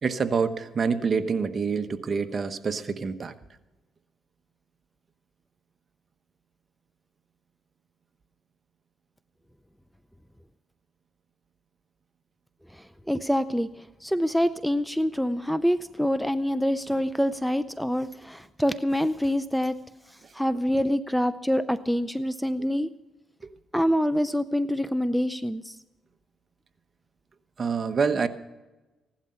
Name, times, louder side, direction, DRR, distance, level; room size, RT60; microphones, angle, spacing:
voice 1, 0.0-3.3 27.6-28.3, right 5 dB, 40° right, 9 dB, 1.1 m, -26 dB
voice 2, 12.7-19.8 20.1-22.9 23.7-25.8, equal, ahead, 13 dB, 0.5 m, -26 dB
16.5 x 11.5 x 5.7 m, 1.1 s
cardioid pair, 90°, 0 cm